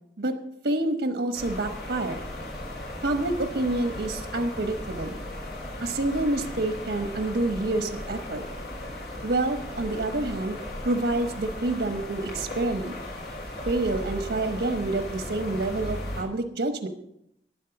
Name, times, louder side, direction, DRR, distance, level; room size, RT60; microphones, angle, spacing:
voice 1, 0.6-2.2 3.0-5.2 5.8-8.4 9.2-10.6 10.8-13.0 13.7-16.9, right 2 dB, 85° right, 6 dB, 1.0 m, -28 dB
sound 1, 1.3-16.2, left 1 dB, 70° left, 4.5 m, -37 dB
12.0 x 10.0 x 5.9 m, 0.78 s
head